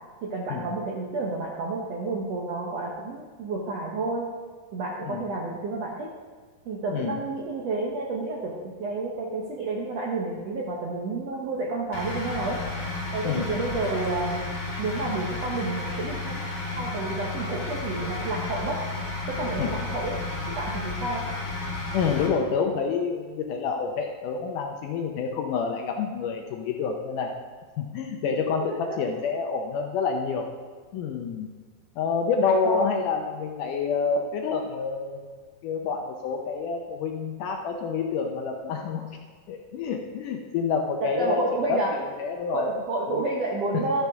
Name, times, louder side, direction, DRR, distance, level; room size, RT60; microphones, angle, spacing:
voice 1, 0.2-4.3 4.7-6.1 6.6-12.6 13.1-16.4 16.7-18.8 19.3-20.2 20.5-21.3 28.2-29.0 32.6-32.8 41.0-42.0 42.5-44.0, right 3 dB, 75° right, -2 dB, 1.5 m, -30 dB
sound 1, 11.9-22.3, left 3 dB, 40° left, 2.5 m, -32 dB
voice 2, 21.9-27.3 27.8-30.5 30.9-31.5 32.0-35.3 35.6-39.2 39.5-41.4 41.7-42.7 43.1-43.2, left 5 dB, 75° left, 3 dB, 2.0 m, -28 dB
13.0 x 10.0 x 3.6 m, 1.5 s
omnidirectional pair, 4.3 m